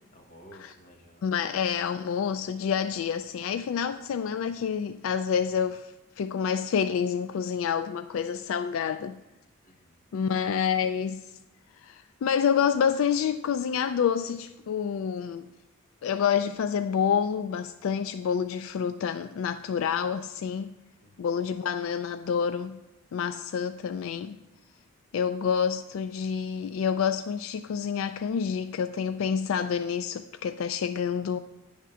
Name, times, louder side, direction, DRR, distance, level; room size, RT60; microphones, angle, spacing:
voice 1, 0.1-1.3 9.6-10.0 21.0-21.4 31.1-31.3, equal, 40° left, 0 dB, 1.5 m, -54 dB
voice 2, 1.2-9.2 10.1-11.2 11.8-15.5 16.0-20.7 21.2-22.8 23.1-24.4 25.1-31.4, left 7 dB, 75° left, 10 dB, 0.3 m, -28 dB
10.0 x 3.6 x 6.8 m, 1.0 s
head